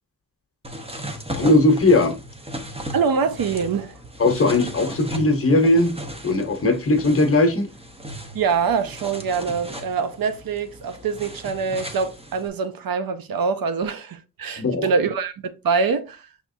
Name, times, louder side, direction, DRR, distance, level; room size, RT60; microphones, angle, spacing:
sound 1, 0.6-12.5, equal, 15° right, 0.8 m, -36 dB
voice 1, 1.4-2.1 4.2-5.9 6.2-7.7 14.6-14.9, left 2 dB, 40° left, 1.0 m, -18 dB
voice 2, 2.9-4.0 8.3-16.3, right 5 dB, 80° right, 0.7 m, -24 dB
5.7 x 3.6 x 2.6 m
wide cardioid pair, 120°, 34 cm